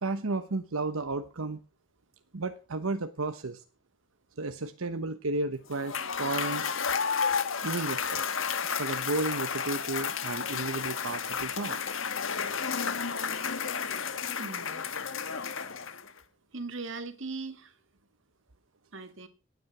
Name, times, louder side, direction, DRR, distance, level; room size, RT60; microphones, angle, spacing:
voice 1, 0.0-1.6 2.3-3.6 4.4-6.7 7.6-8.2 8.8-11.8, right 3 dB, 90° right, 1.0 m, -33 dB
Cheering / Applause / Crowd, 5.7-16.2, left 6 dB, 75° left, 1.4 m, -32 dB
voice 2, 14.4-14.9 16.5-17.8 18.9-19.3, right 3 dB, 65° right, 1.9 m, -39 dB
18.0 x 9.6 x 6.0 m
head